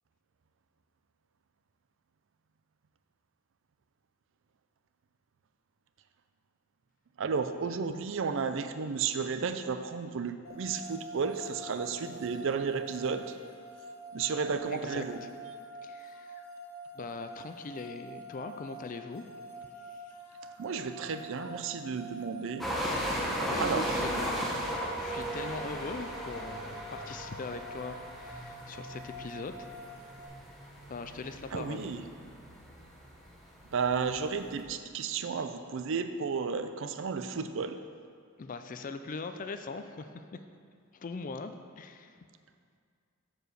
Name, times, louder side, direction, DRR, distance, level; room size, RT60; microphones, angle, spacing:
voice 1, 7.2-13.4 14.1-15.2 20.6-22.7 23.6-23.9 31.5-32.0 33.7-37.8, right 5 dB, 60° right, 9 dB, 0.4 m, -33 dB
sound 1, 10.4-30.3, right 1 dB, 90° left, 1.4 m, -47 dB
voice 2, 14.7-15.0 15.8-16.4 16.9-19.2 19.9-20.0 23.2-24.5 25.0-29.7 30.9-31.9 38.4-40.4 40.9-42.2, left 4 dB, 35° left, 9 dB, 0.4 m, -41 dB
sound 2, 22.6-34.6, equal, ahead, 0.9 m, -37 dB
7.6 x 4.8 x 6.5 m, 2.2 s
head